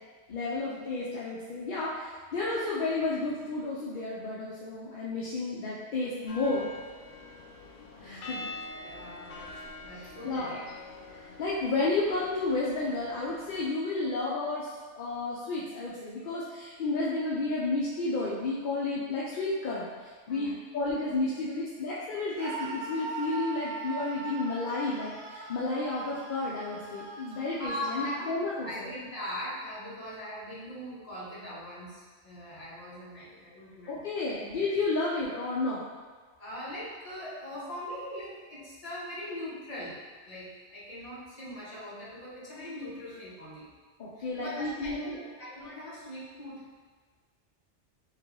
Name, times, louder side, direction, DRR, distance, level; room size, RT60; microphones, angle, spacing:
voice 1, 0.3-6.7 8.0-8.5 9.9-10.5 11.2-28.9 33.9-35.8 44.0-45.2, left 3 dB, 55° left, -6 dB, 0.6 m, -32 dB
sound 1, 6.3-13.7, left 2 dB, 80° left, 0.9 m, -45 dB
voice 2, 8.8-10.6 20.3-20.6 27.6-34.1 36.4-40.0 40.2-43.7 44.2-46.6, equal, 35° left, -8 dB, 1.1 m, -41 dB
Screaming, 22.3-28.3, right 3 dB, 65° right, 0.8 m, -40 dB
3.2 x 2.9 x 3.6 m, 1.5 s
omnidirectional pair, 1.2 m